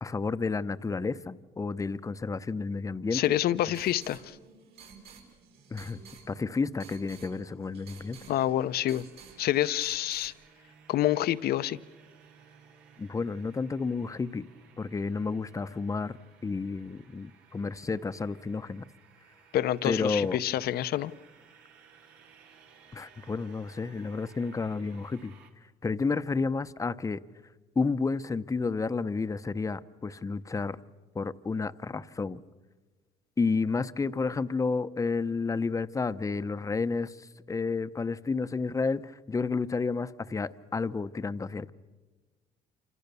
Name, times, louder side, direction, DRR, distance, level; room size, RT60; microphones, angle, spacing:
voice 1, 0.0-3.3 5.7-6.0 6.3-8.2 13.0-14.5 14.8-16.2 16.4-18.8 19.8-20.4 22.9-25.3 25.8-27.2 27.8-30.8 31.1-32.4 33.4-37.2 37.5-41.7, left 4 dB, 20° left, 0.8 m, -31 dB
voice 2, 3.1-4.4 8.3-9.1 9.4-10.3 10.9-11.8 19.5-21.1, left 13 dB, 65° left, 0.8 m, -27 dB
sound 1, 3.3-10.3, right 5 dB, 70° right, 6.8 m, -52 dB
sound 2, 8.2-25.5, right 6 dB, 90° right, 2.9 m, -58 dB
28.0 x 26.5 x 6.9 m
cardioid pair, 110°, 17 cm